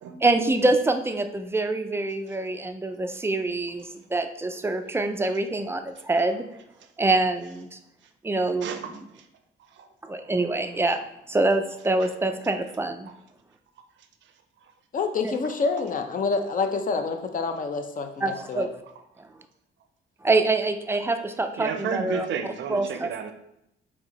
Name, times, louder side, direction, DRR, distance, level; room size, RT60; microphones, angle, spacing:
voice 1, 0.2-6.5 7.0-7.8 8.2-9.0 10.0-13.1 15.2-15.3 18.2-18.7 20.2-22.3 22.7-23.1, right 2 dB, 10° right, 7 dB, 0.3 m, -25 dB
voice 2, 8.6-9.0 9.8-9.9 21.6-23.3, right 7 dB, 70° right, 8 dB, 0.5 m, -32 dB
voice 3, 14.9-18.7, left 4 dB, 45° left, 6 dB, 0.5 m, -27 dB
4.4 x 2.9 x 2.9 m, 0.81 s
cardioid pair, 90°, 20 cm